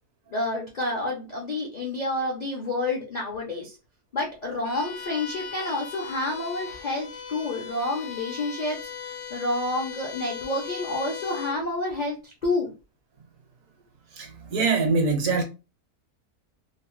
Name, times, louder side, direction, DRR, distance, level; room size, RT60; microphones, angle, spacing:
voice 1, 0.3-3.8 4.1-12.7, left 2 dB, 55° left, 0.4 m, -29 dB
Bowed string instrument, 4.6-11.7, left 7 dB, 80° left, 1.2 m, -38 dB
voice 2, 14.1-15.4, right 4 dB, 70° right, 1.0 m, -23 dB
2.8 x 2.1 x 3.0 m
omnidirectional pair, 1.6 m